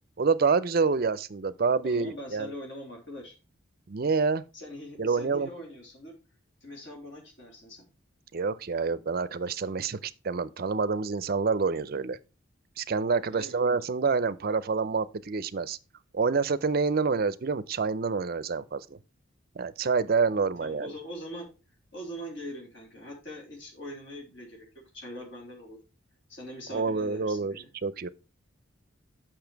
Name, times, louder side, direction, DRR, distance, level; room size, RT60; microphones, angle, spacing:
voice 1, 0.2-2.5 3.9-4.4 5.0-5.5 8.3-12.2 12.8-15.8 16.1-19.0 19.6-20.9 26.7-27.5 27.8-28.1, right 4 dB, 45° right, 0.4 m, -27 dB
voice 2, 1.8-3.3 4.5-6.1 6.6-7.8 13.3-13.6 20.3-21.5 21.9-24.7 24.9-25.8 26.3-27.7, equal, 60° left, 3.1 m, -42 dB
7.0 x 5.9 x 4.5 m
head